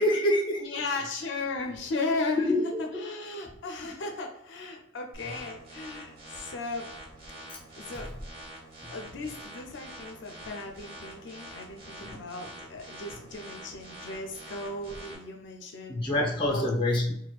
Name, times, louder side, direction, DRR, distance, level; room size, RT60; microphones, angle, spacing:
voice 1, 0.0-0.7 2.3-3.0 7.5-7.6 7.9-8.1 8.8-8.9 12.1-12.2 15.9-17.1, left 1 dB, 25° left, 0 dB, 0.6 m, -26 dB
voice 2, 0.6-2.5 2.8-6.9 7.8-8.1 8.9-16.0 16.5-16.7, left 3 dB, 70° left, 3 dB, 0.4 m, -36 dB
sound 1, 5.1-15.1, right 1 dB, 50° right, 1.1 m, -46 dB
4.1 x 2.2 x 2.3 m, 0.74 s
head